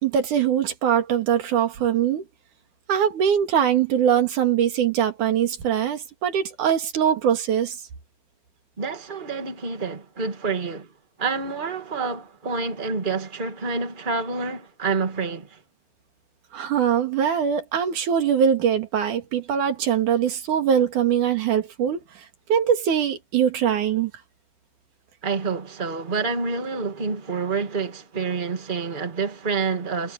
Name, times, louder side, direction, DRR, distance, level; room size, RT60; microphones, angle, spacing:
voice 1, 0.0-2.3 2.9-7.8 16.5-24.1, right 8 dB, 85° right, 3.6 m, -22 dB
voice 2, 8.8-10.9 11.2-15.6 25.2-30.1, right 4 dB, 20° right, 2.1 m, -28 dB
omnidirectional pair, 3.5 m